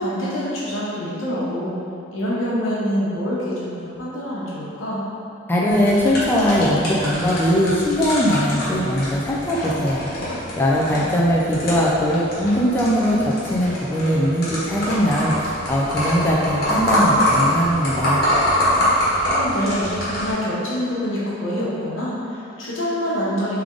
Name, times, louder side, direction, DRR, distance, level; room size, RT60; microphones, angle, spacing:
voice 1, 0.0-1.7 2.1-5.0 10.8-11.1 18.8-23.6, equal, 90° left, -7 dB, 1.1 m, -26 dB
voice 2, 5.5-10.2 10.6-18.2, equal, 10° left, -5 dB, 0.4 m, -20 dB
sound 1, 5.7-20.3, equal, 50° left, 1.3 m, -25 dB
3.5 x 3.4 x 3.7 m, 2.6 s
head